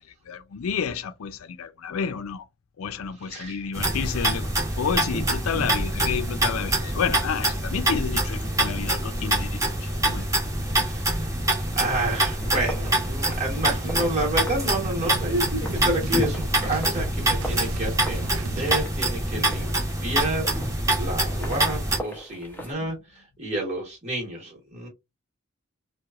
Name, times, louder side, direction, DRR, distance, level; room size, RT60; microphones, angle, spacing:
voice 1, 0.3-2.4 2.8-4.5 4.8-10.4 22.8-22.9, left 7 dB, 80° left, 0.4 m, -30 dB
voice 2, 3.2-3.6 10.6-11.3 11.7-24.9, right 1 dB, 35° right, 1.1 m, -30 dB
sound 1, 3.7-22.0, right 1 dB, 15° right, 0.9 m, -25 dB
sound 2, 12.0-22.7, equal, 10° left, 0.6 m, -42 dB
sound 3, 13.3-18.8, right 3 dB, 70° right, 0.4 m, -38 dB
2.8 x 2.2 x 2.3 m
head